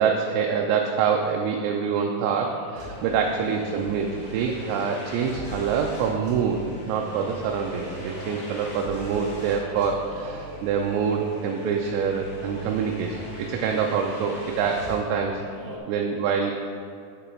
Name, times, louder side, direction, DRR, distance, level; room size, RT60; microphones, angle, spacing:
voice 1, 0.0-13.2 13.5-15.4 15.9-16.5, right 6 dB, 85° right, 2 dB, 2.9 m, -25 dB
sound 1, 2.3-15.8, right 1 dB, 70° right, 2.3 m, -41 dB
sound 2, 2.8-15.0, right 1 dB, 45° left, 2.3 m, -41 dB
7.6 x 6.9 x 4.4 m, 2.3 s
omnidirectional pair, 5.3 m